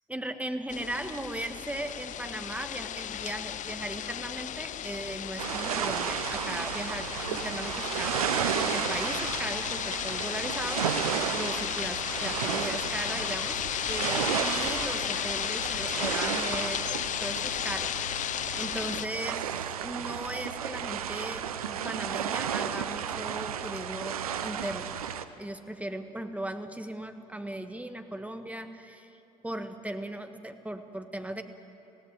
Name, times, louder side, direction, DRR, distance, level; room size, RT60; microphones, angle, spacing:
voice 1, 0.1-19.5 19.8-25.0 25.4-31.4, right 1 dB, 5° right, 8 dB, 1.5 m, -38 dB
sound 1, 0.7-19.1, left 11 dB, 45° left, 0.5 m, -34 dB
sound 2, 5.4-25.2, right 8 dB, 85° right, 0.7 m, -33 dB
19.0 x 17.0 x 9.5 m, 3.0 s
hypercardioid pair, 55°, 18 cm